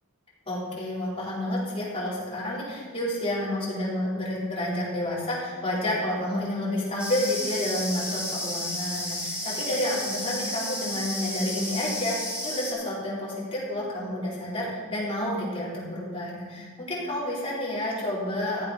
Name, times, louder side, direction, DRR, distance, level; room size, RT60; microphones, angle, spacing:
voice 1, 0.5-18.6, left 1 dB, 25° left, -8 dB, 4.4 m, -30 dB
sound 1, 7.0-12.7, left 1 dB, 5° right, 3.7 m, -32 dB
15.0 x 7.8 x 5.4 m, 1.5 s
head